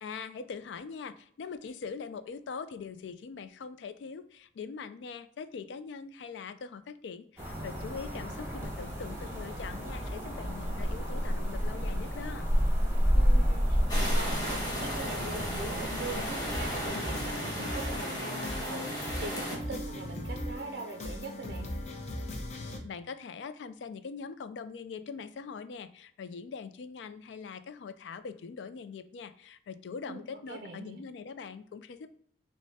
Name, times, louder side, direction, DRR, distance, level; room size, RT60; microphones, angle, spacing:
voice 1, 0.0-12.4 22.8-32.1, left 5 dB, 80° left, 11 dB, 0.3 m, -42 dB
sound 1, 7.4-16.9, equal, 15° right, 1.0 m, -30 dB
voice 2, 13.1-21.7 30.1-31.0, right 3 dB, 60° right, 4 dB, 0.4 m, -42 dB
sound 2, 13.9-19.6, equal, 20° left, 1.1 m, -35 dB
sound 3, 16.4-22.8, left 1 dB, 40° left, 0.6 m, -38 dB
6.3 x 2.1 x 2.7 m, 0.63 s
head